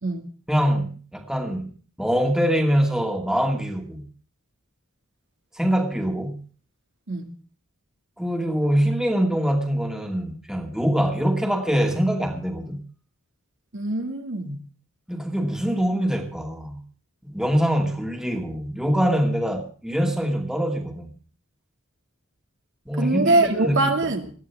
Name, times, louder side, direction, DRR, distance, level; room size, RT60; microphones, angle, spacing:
voice 1, 0.5-1.7 2.0-4.0 5.6-6.4 8.2-12.8 15.1-16.8 17.2-21.1 22.9-23.9, equal, 5° right, 2.4 m, -24 dB
voice 2, 13.7-14.6 23.0-24.3, right 2 dB, 60° right, 2.3 m, -23 dB
20.5 x 14.0 x 3.5 m
head